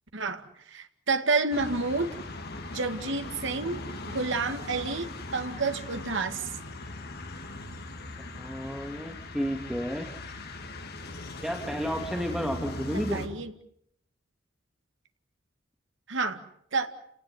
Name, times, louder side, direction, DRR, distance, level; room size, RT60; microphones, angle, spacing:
voice 1, 0.7-2.2 2.7-6.5 12.9-13.5 16.1-16.4 16.7-16.9, right 3 dB, 65° right, 8 dB, 2.2 m, -29 dB
sound 1, 1.5-13.3, left 2 dB, 55° left, 2.9 m, -39 dB
voice 2, 8.2-10.1 11.4-13.2, equal, 5° right, 2 dB, 2.5 m, -32 dB
29.5 x 18.5 x 9.5 m, 0.73 s
head